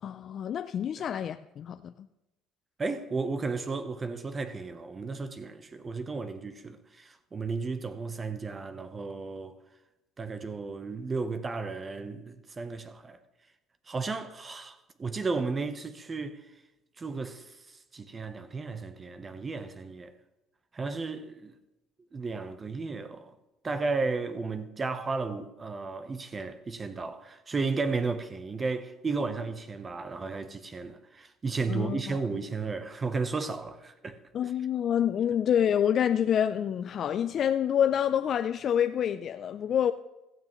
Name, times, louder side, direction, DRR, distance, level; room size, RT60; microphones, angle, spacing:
voice 1, 0.0-1.9 31.7-32.2 34.3-39.9, left 9 dB, 45° left, 0.4 m, -27 dB
voice 2, 2.8-9.6 10.2-13.2 13.9-16.6 17.0-20.1 20.7-21.5 22.1-23.3 23.6-34.2, right 4 dB, 25° right, 0.8 m, -34 dB
16.5 x 13.0 x 3.1 m
cardioid pair, 115°, 0 cm